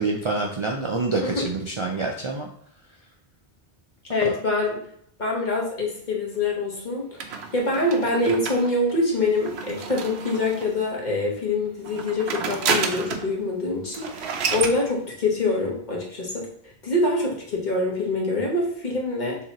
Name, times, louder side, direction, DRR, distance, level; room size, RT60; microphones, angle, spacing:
voice 1, 0.0-2.5 4.2-4.3, right 3 dB, 45° right, 1 dB, 0.4 m, -26 dB
voice 2, 4.1-4.8 5.2-16.5 16.8-19.4, left 2 dB, 45° left, -2 dB, 1.3 m, -25 dB
sound 1, 7.2-10.8 11.8-13.3 13.6-13.7 13.9-14.8, right 5 dB, 90° right, 0.9 m, -30 dB
6.3 x 2.9 x 2.9 m, 0.68 s
omnidirectional pair, 1.1 m